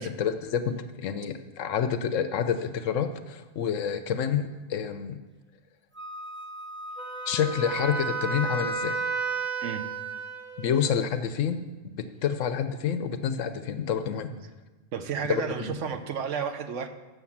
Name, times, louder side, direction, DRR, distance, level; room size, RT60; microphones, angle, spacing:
voice 1, 0.0-5.2 7.3-9.0 10.6-11.6 11.9-14.3 15.2-15.7, left 8 dB, 80° left, 10 dB, 1.0 m, -28 dB
Wind instrument woodwind instrument, 5.9-9.5, equal, 10° right, 0.6 m, -39 dB
Wind instrument woodwind instrument 2, 7.0-11.0, right 4 dB, 30° right, 1.1 m, -32 dB
voice 2, 14.9-16.9, right 7 dB, 70° right, 8 dB, 1.1 m, -32 dB
8.1 x 6.5 x 7.2 m, 1.2 s
omnidirectional pair, 1.3 m